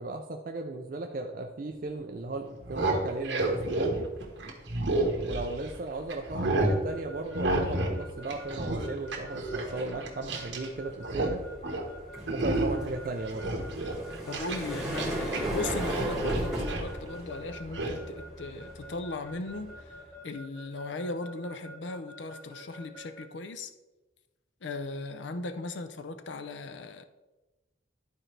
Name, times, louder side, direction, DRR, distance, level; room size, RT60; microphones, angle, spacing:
voice 1, 0.0-4.1 5.2-11.4 12.3-13.6, right 2 dB, 45° right, 0.5 m, -36 dB
sound 1, 2.5-5.8 6.1-6.8 7.3-10.7 10.9-11.3 11.6-11.9 12.3-12.9 13.3-15.4 15.7-16.9 17.7-17.9, right 2 dB, 75° right, 1.5 m, -30 dB
sound 2, 3.5-20.2, right 1 dB, ahead, 2.8 m, -38 dB
Keyboard (musical) / Alarm, 6.6-23.3, equal, 20° left, 2.1 m, -47 dB
voice 2, 14.3-20.0 20.2-23.7 24.6-27.0, left 2 dB, 70° left, 0.5 m, -37 dB
12.0 x 4.5 x 3.3 m
head